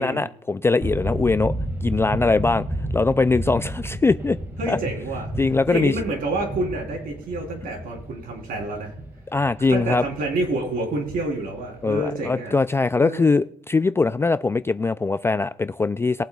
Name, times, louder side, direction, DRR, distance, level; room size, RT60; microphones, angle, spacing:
voice 1, 0.0-1.5 1.8-2.7 2.9-4.4 4.7-4.8 5.4-5.9 9.3-10.0 11.8-16.2, left 3 dB, 15° left, 13 dB, 0.3 m, -21 dB
sound 1, 0.8-12.3, right 1 dB, 15° right, 2.0 m, -32 dB
voice 2, 4.6-5.3 5.7-8.9 9.7-12.6 13.0-13.4, right 2 dB, 60° right, 1 dB, 3.7 m, -28 dB
21.5 x 7.8 x 2.4 m, 0.65 s
cardioid pair, 110°, 17 cm